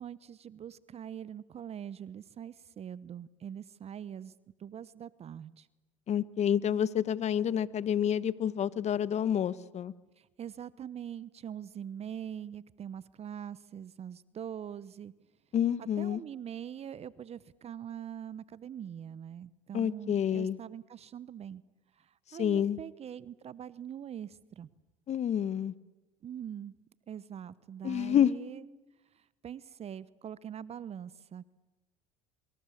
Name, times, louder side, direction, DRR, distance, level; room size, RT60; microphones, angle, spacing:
voice 1, 0.0-4.3 4.6-5.7 10.2-15.1 15.8-21.6 22.0-24.7 26.2-26.7 27.1-28.6 29.1-31.5, right 9 dB, 40° right, 19 dB, 0.9 m, -43 dB
voice 2, 6.1-9.9 15.5-16.2 19.7-20.6 22.4-22.8 25.1-25.7 27.8-28.3, left 9 dB, 45° left, 17 dB, 1.1 m, -28 dB
26.5 x 25.0 x 8.5 m, 1.1 s
hypercardioid pair, 75°, 16 cm